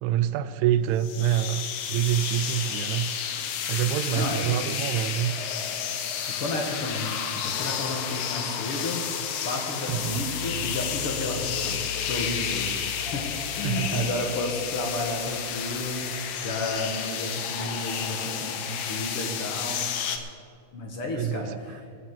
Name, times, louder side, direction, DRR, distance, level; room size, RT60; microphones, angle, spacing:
voice 1, 0.0-3.1 3.7-5.3 9.8-10.2 13.6-14.1 21.1-21.5, right 11 dB, 90° right, 13 dB, 1.6 m, -26 dB
sound 1, 1.0-20.2, left 8 dB, 75° left, 1.4 m, -31 dB
voice 2, 4.1-4.6 6.4-7.2 7.4-9.1 9.4-11.8 12.1-13.3 13.6-19.8 20.7-21.8, left 2 dB, 55° left, 1 dB, 1.8 m, -32 dB
sound 2, 9.9-15.9, left 2 dB, 70° right, 1.5 m, -40 dB
18.0 x 7.1 x 7.3 m, 2.2 s
omnidirectional pair, 3.9 m